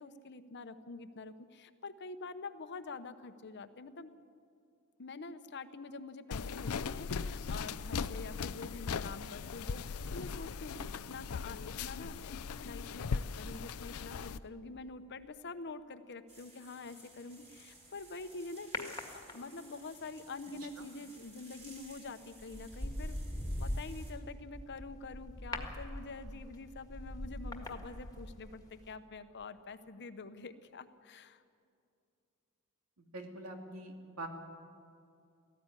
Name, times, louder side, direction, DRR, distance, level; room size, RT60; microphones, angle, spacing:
voice 1, 0.0-4.1 5.0-12.3 12.6-23.2 23.6-31.4, left 3 dB, 55° left, 11 dB, 0.9 m, -46 dB
sound 1, 6.3-14.4, left 5 dB, 80° left, 0.5 m, -39 dB
sound 2, 16.3-24.1, right 2 dB, 30° right, 4.6 m, -57 dB
sound 3, 18.7-19.8 21.6-21.9 22.4-28.6 28.9-29.0, left 1 dB, 15° left, 1.8 m, -41 dB
voice 2, 33.1-34.3, right 2 dB, 80° right, 3 dB, 2.6 m, -44 dB
18.5 x 14.5 x 9.8 m, 2.4 s
head